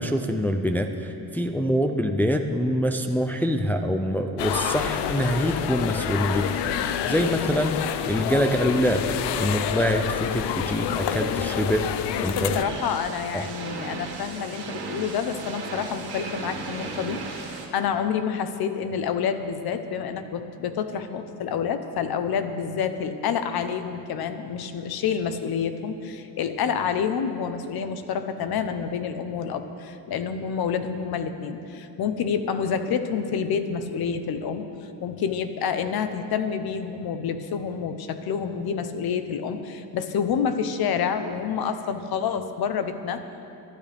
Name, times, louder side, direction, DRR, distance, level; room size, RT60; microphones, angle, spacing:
voice 1, 0.0-7.8 8.0-9.0 9.4-11.9 12.2-12.5 13.3-13.5, equal, 5° left, 4 dB, 0.4 m, -25 dB
sound 1, 4.4-12.6, left 9 dB, 90° left, 0.7 m, -28 dB
voice 2, 12.1-34.7 35.0-43.3, left 7 dB, 65° left, 9 dB, 1.0 m, -28 dB
sound 2, 12.6-17.7, right 4 dB, 70° right, 2.0 m, -36 dB
22.0 x 12.0 x 3.5 m, 2.8 s
cardioid pair, 150°, 40 cm